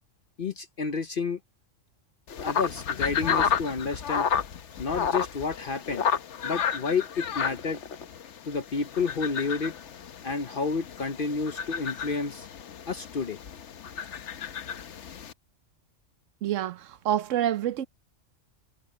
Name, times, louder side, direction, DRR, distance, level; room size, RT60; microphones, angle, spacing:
voice 1, 0.4-1.4 2.4-4.3 4.8-6.0 6.4-7.8 8.5-9.7 10.2-12.5 12.9-13.4, left 4 dB, 50° left, 0.9 m, -30 dB
sound 1, 2.3-15.3, left 7 dB, 70° left, 1.2 m, -32 dB
voice 2, 16.4-17.9, right 11 dB, 80° right, 1.1 m, -27 dB
omnidirectional pair, 1.3 m